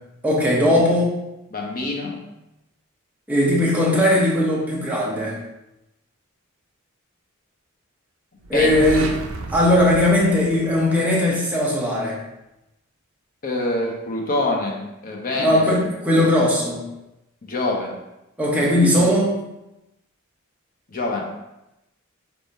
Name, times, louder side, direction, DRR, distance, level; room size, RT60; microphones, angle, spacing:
voice 1, 0.2-1.2 3.3-5.4 8.5-9.1 9.5-12.2 15.4-16.9 18.4-19.3, left 1 dB, 10° right, -4 dB, 0.8 m, -19 dB
voice 2, 1.5-2.2 8.5-8.7 13.4-15.8 16.1-16.2 17.4-18.0 20.9-21.2, left 2 dB, 45° left, 0 dB, 0.8 m, -25 dB
sound 1, 8.4-11.3, right 2 dB, 75° right, 0.5 m, -33 dB
4.1 x 3.7 x 2.7 m, 0.92 s
head